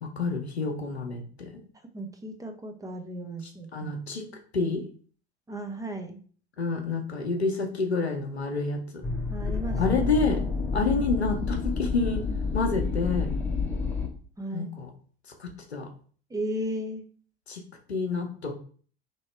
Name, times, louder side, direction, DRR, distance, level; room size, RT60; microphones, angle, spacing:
voice 1, 0.0-1.6 3.7-4.2 4.5-4.8 6.6-9.0 9.8-10.4 10.7-12.2 12.5-13.3 14.5-14.9 15.4-15.9 17.5-17.6 17.9-18.5, left 3 dB, 85° left, 3 dB, 0.8 m, -28 dB
voice 2, 1.9-3.9 5.5-6.2 9.3-9.8 14.4-14.7 16.3-17.0, right 1 dB, 10° right, 3 dB, 0.7 m, -35 dB
sound 1, 9.0-14.1, left 4 dB, 5° left, 1.0 m, -29 dB
3.0 x 2.8 x 4.3 m, 0.43 s
figure-of-eight pair, 70°, 32 cm